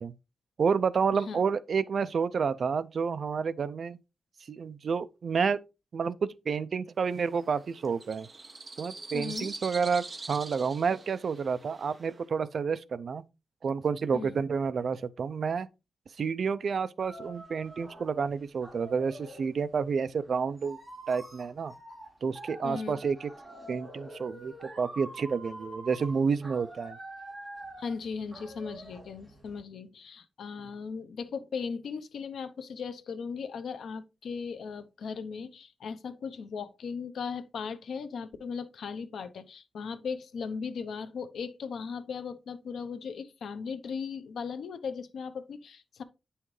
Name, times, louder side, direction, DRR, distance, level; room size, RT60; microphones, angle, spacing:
voice 1, 0.6-4.0 4.5-5.6 5.9-6.2 6.5-8.3 8.8-13.2 13.6-15.7 16.2-20.8 21.1-21.7 22.2-23.3 23.7-27.0, right 5 dB, 55° right, 0.4 m, -29 dB
sound 1, 7.1-12.2, right 3 dB, 25° right, 1.0 m, -44 dB
voice 2, 9.1-9.5 14.1-14.4 22.6-22.9 27.8-46.0, left 5 dB, 90° left, 0.7 m, -37 dB
sound 2, 17.0-19.5 20.1-29.6, right 1 dB, 5° right, 2.9 m, -46 dB
9.3 x 5.6 x 3.2 m
wide cardioid pair, 170°, 0 cm